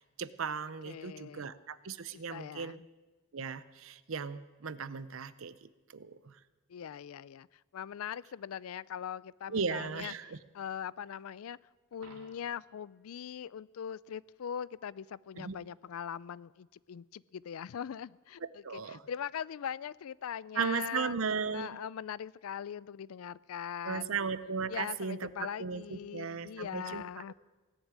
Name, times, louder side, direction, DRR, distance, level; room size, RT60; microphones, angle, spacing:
voice 1, 0.2-2.8 3.3-6.4 9.5-10.4 15.4-15.6 18.4-19.0 20.6-21.7 23.8-27.0 27.3-27.4, right 5 dB, 65° right, 0.7 m, -36 dB
voice 2, 0.8-1.5 2.1-2.9 6.7-7.5 7.7-11.6 11.9-21.2 21.5-24.2 24.7-27.3, left 8 dB, 80° left, 0.4 m, -41 dB
Coin (dropping), 11.9-12.8 18.9-19.0, right 2 dB, 85° right, 2.7 m, -57 dB
17.0 x 7.2 x 9.6 m
head